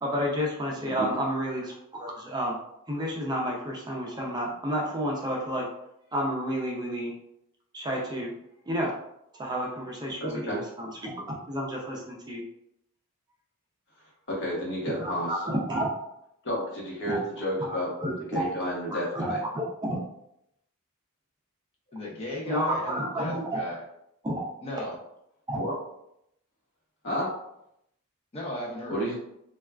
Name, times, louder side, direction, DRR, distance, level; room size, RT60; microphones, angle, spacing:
voice 1, 0.0-2.6 2.9-5.7 6.1-7.1 7.7-8.3 8.7-8.9 9.4-12.4 15.0-15.9 17.1-17.2 17.6-18.5 19.1-20.0 22.5-23.6 24.2-24.3 25.5-25.6, equal, 20° right, -2 dB, 0.5 m, -30 dB
voice 2, 10.2-10.6 14.3-15.3 16.4-17.9 18.2-19.4 25.5-25.7 27.0-27.3 28.9-29.1, equal, 55° left, -4 dB, 1.0 m, -31 dB
voice 3, 21.9-23.8 24.6-24.9 28.3-29.0, left 1 dB, 25° left, -3 dB, 0.6 m, -36 dB
3.3 x 2.3 x 2.3 m, 0.78 s
head